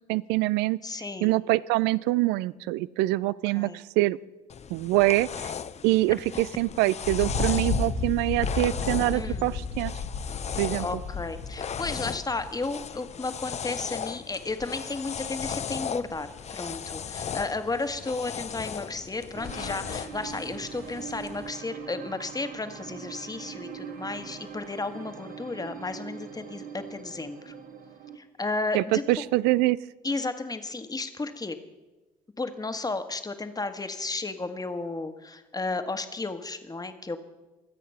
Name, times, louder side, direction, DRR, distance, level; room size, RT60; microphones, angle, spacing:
voice 1, 0.1-0.8 1.2-4.2 4.7-5.5 5.8-9.9 10.6-10.9 28.7-29.8, right 18 dB, 70° right, 19 dB, 0.5 m, -25 dB
voice 2, 0.8-1.3 3.5-3.8 9.1-9.4 10.5-27.5 28.1-29.0 30.0-31.6 32.4-37.2, left 3 dB, 20° left, 8 dB, 1.6 m, -33 dB
sound 1, 4.5-21.5, left 7 dB, 40° left, 0.7 m, -37 dB
Thunder, 7.0-12.5, left 4 dB, 70° left, 2.2 m, -32 dB
sound 2, 19.3-28.2, right 7 dB, 50° right, 1.7 m, -42 dB
24.5 x 8.4 x 5.7 m, 1.2 s
hypercardioid pair, 50°, 18 cm